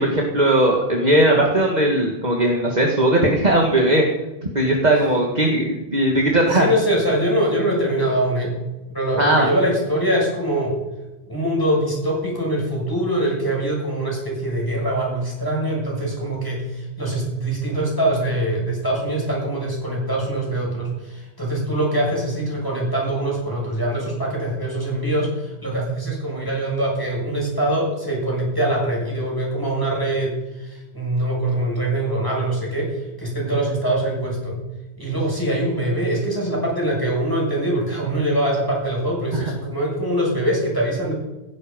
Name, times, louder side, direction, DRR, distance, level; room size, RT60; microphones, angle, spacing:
voice 1, 0.0-4.1 4.5-6.7 9.2-9.5 39.3-39.5, right 1 dB, 40° right, 0 dB, 2.2 m, -18 dB
voice 2, 6.5-8.5 8.9-10.7 11.3-34.6 35.0-41.1, right 1 dB, 20° left, -3 dB, 6.9 m, -23 dB
16.5 x 14.5 x 5.4 m, 1.0 s
omnidirectional pair, 1.1 m